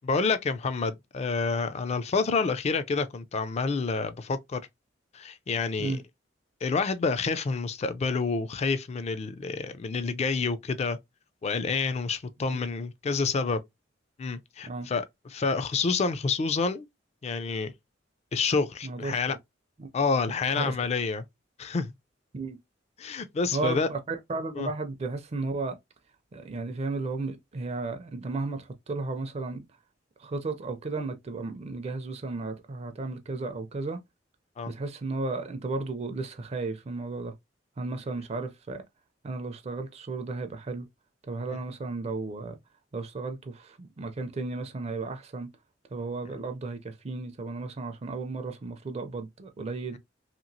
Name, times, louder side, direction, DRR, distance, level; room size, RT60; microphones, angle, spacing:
voice 1, 0.0-4.6 5.1-6.0 6.6-11.0 11.4-13.6 14.2-15.0 15.3-16.9 17.2-17.7 18.3-19.4 19.9-21.2 21.6-21.9 23.0-23.9 24.6-24.7 34.6-34.7, left 4 dB, 35° left, 0.3 m, -28 dB
voice 2, 18.8-19.4 19.8-19.9 20.4-20.8 22.3-22.6 23.5-25.7 26.3-29.6 30.2-34.0 34.7-37.3 37.8-38.8 39.2-40.9 41.2-42.6 42.9-45.5 45.9-50.0, right 3 dB, 35° right, 0.4 m, -34 dB
2.9 x 2.7 x 2.6 m
head